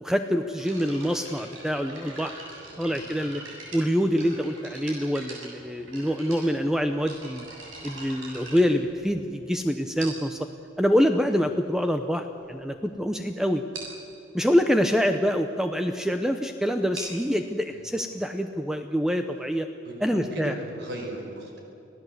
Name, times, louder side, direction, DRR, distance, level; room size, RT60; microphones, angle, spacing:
voice 1, 0.0-2.3 2.8-3.4 3.7-7.5 7.8-10.4 10.8-13.6 14.3-19.7 20.0-20.5, equal, 5° right, 7 dB, 0.7 m, -25 dB
sound 1, 0.6-9.4 10.0-10.4 11.2-11.3 12.0-12.1 12.3-12.5 12.9-13.0 13.2-13.3 13.7-14.0 16.7-20.2, right 2 dB, 85° right, 7.6 m, -43 dB
voice 2, 2.7-3.4 11.3-11.4 17.7-17.9 19.8-21.6, right 1 dB, 60° right, 1 dB, 5.4 m, -37 dB
26.5 x 17.0 x 8.1 m, 2.7 s
head